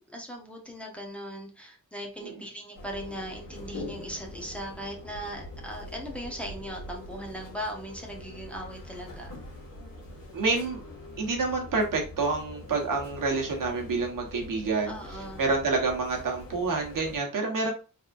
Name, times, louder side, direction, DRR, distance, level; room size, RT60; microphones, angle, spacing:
voice 1, 0.0-9.3 14.8-15.4, equal, 5° left, -1 dB, 1.0 m, -39 dB
sound 1, 2.7-17.2, left 1 dB, 85° left, 2.0 m, -44 dB
voice 2, 10.3-10.8 11.2-14.9 15.4-17.7, right 3 dB, 75° right, 0 dB, 1.3 m, -28 dB
4.0 x 3.6 x 2.5 m, 0.34 s
wide cardioid pair, 125°, 33 cm